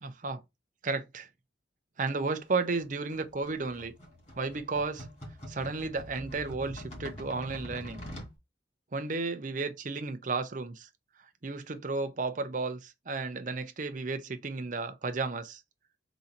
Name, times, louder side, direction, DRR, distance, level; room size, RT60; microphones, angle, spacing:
voice 1, 0.0-0.4 0.8-1.3 2.0-3.9 4.4-5.1 5.5-8.0 8.9-10.9 11.4-15.6, right 3 dB, 45° right, 0.6 m, -33 dB
sound 1, 2.7-8.3, equal, 35° left, 2.3 m, -45 dB
3.9 x 2.8 x 4.2 m
head